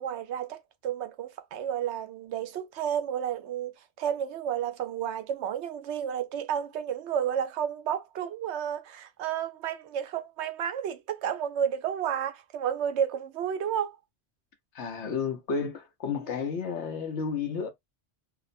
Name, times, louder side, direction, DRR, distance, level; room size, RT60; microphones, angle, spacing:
voice 1, 0.0-3.7 4.0-14.0 16.2-16.3, right 9 dB, 85° right, 0.9 m, -31 dB
voice 2, 14.7-17.7, left 5 dB, 85° left, 1.1 m, -32 dB
2.9 x 2.0 x 2.5 m
omnidirectional pair, 1.1 m